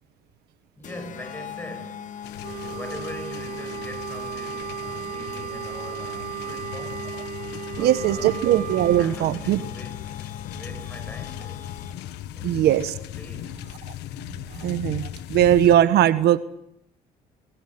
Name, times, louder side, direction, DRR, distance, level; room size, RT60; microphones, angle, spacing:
sound 1, 0.8-12.2, left 9 dB, 50° left, 1.9 m, -40 dB
voice 1, 0.8-7.3 7.6-8.5 9.0-10.3 10.5-11.7 12.3-12.9 13.1-13.9, left 1 dB, 10° left, 7.3 m, -42 dB
sound 2, 2.2-15.8, left 12 dB, 85° left, 1.5 m, -38 dB
Wind instrument woodwind instrument, 2.4-9.1, right 9 dB, 55° right, 1.7 m, -35 dB
voice 2, 7.8-9.6 12.4-12.9 14.5-16.4, right 12 dB, 75° right, 1.3 m, -20 dB
25.5 x 22.0 x 8.0 m
cardioid pair, 110°, 17 cm